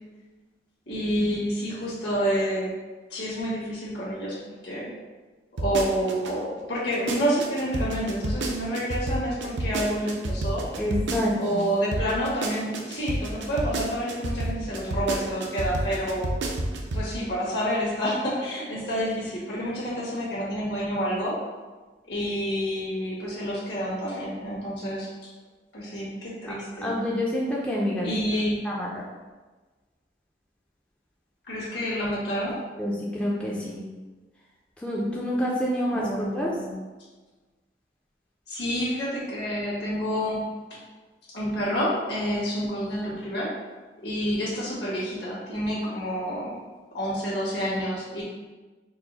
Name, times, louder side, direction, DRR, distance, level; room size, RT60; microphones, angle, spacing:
voice 1, 0.9-2.8 3.1-4.9 5.6-10.6 11.4-16.3 16.9-21.4 22.1-25.3 25.7-26.9 28.0-28.7 31.4-32.6 35.9-36.8 38.5-40.8 41.3-43.5 44.0-46.6 46.9-48.2, equal, 70° left, -6 dB, 1.5 m, -28 dB
sound 1, 5.6-6.3 6.7-11.7 11.9-17.1 17.4-17.5, right 2 dB, 90° right, 0.5 m, -29 dB
voice 2, 10.8-11.6 26.5-28.1 28.6-28.9 32.8-33.8 34.8-36.1 36.3-36.5, equal, 5° left, -5 dB, 0.4 m, -27 dB
4.6 x 2.1 x 3.9 m, 1.3 s
head